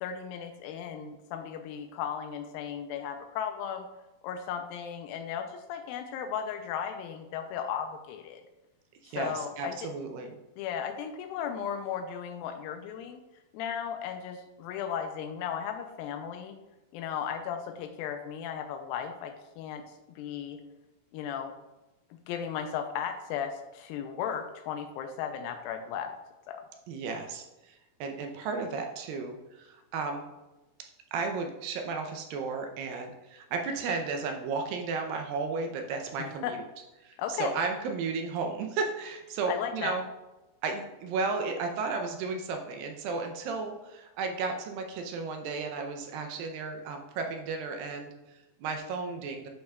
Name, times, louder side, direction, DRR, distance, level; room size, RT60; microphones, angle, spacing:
voice 1, 0.0-3.9 4.2-8.4 9.0-9.9 10.6-13.2 13.5-16.6 16.9-20.6 21.1-21.5 22.3-26.1 26.5-26.6 36.2-36.5 37.2-37.6 39.5-40.0, left 8 dB, 90° left, 6 dB, 2.0 m, -36 dB
voice 2, 9.0-10.3 26.9-30.3 31.1-36.6 37.0-40.0 40.6-49.5, right 4 dB, 85° right, 4 dB, 2.0 m, -34 dB
10.0 x 5.6 x 2.3 m, 1.0 s
omnidirectional pair, 4.7 m